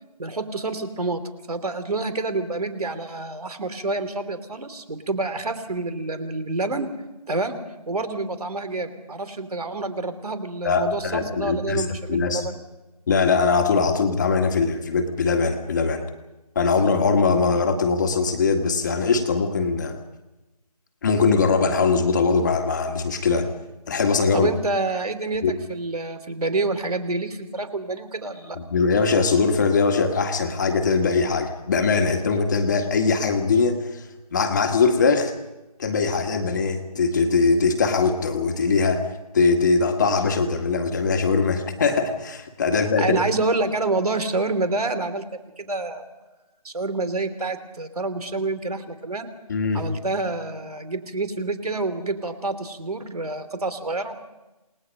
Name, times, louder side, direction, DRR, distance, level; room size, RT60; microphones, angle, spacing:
voice 1, 0.2-1.2 1.5-6.9 7.3-7.6 7.9-12.6 24.3-28.6 43.0-45.2 45.6-46.1 46.6-49.3 49.7-54.2, right 3 dB, 70° right, 11 dB, 3.0 m, -28 dB
voice 2, 10.6-12.4 13.1-16.0 16.6-20.0 21.0-23.5 23.9-24.5 25.4-25.5 28.6-34.1 34.3-35.3 35.8-39.0 39.3-43.1 49.5-49.9, left 4 dB, 30° left, 4 dB, 1.8 m, -21 dB
28.5 x 19.5 x 5.3 m, 1.0 s
figure-of-eight pair, 165°, 20 cm